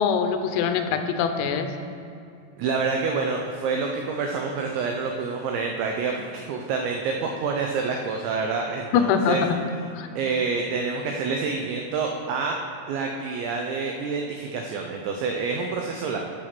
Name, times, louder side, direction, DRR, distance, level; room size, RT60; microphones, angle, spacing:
voice 1, 0.0-1.7 8.9-9.6 9.9-10.1, left 7 dB, 85° left, 7 dB, 3.4 m, -23 dB
voice 2, 2.6-9.4 10.2-12.6 12.9-16.2, right 4 dB, 90° right, 2 dB, 2.5 m, -27 dB
12.5 x 5.0 x 6.0 m, 2.6 s
omnidirectional pair, 6.0 m